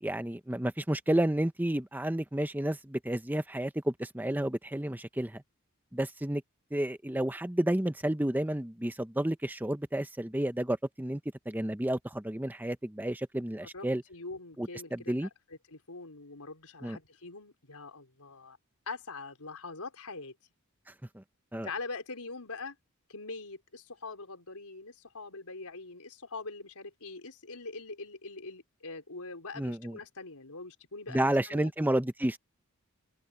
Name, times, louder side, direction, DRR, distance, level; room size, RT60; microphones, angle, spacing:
voice 1, 0.0-5.4 5.9-6.4 6.7-11.2 11.5-14.0 14.6-15.3 16.8-17.0 21.1-21.2 21.5-21.7 29.6-30.0 31.1-32.4, right 1 dB, 10° right, 0.8 m, -31 dB
voice 2, 13.7-18.6 18.9-20.3 21.6-22.8 23.1-31.7, left 3 dB, 85° left, 4.6 m, -43 dB
head